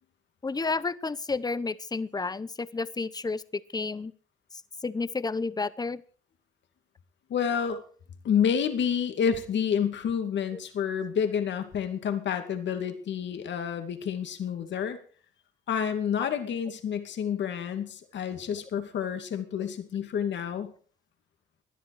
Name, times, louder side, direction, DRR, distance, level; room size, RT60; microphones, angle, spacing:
voice 1, 0.4-4.1 4.8-6.0 16.2-16.3, left 4 dB, 20° left, 17 dB, 0.9 m, -31 dB
voice 2, 7.3-7.8 8.2-15.0 15.7-20.7, left 7 dB, 65° left, 7 dB, 2.4 m, -29 dB
19.0 x 11.5 x 4.8 m, 0.43 s
cardioid pair, 90°, 20 cm